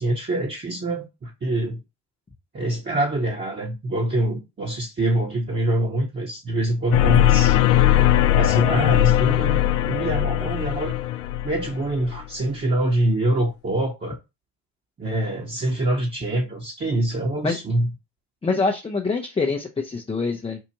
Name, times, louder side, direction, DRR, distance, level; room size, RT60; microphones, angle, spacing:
voice 1, 0.0-1.8 2.5-7.6 8.3-11.0 11.4-14.2 15.0-17.9, right 1 dB, 25° right, 1.2 m, -25 dB
sound 1, 6.9-12.2, left 13 dB, 85° left, 0.5 m, -19 dB
voice 2, 18.4-20.6, left 4 dB, 15° left, 0.7 m, -25 dB
4.7 x 2.5 x 2.9 m
hypercardioid pair, 60°, 42 cm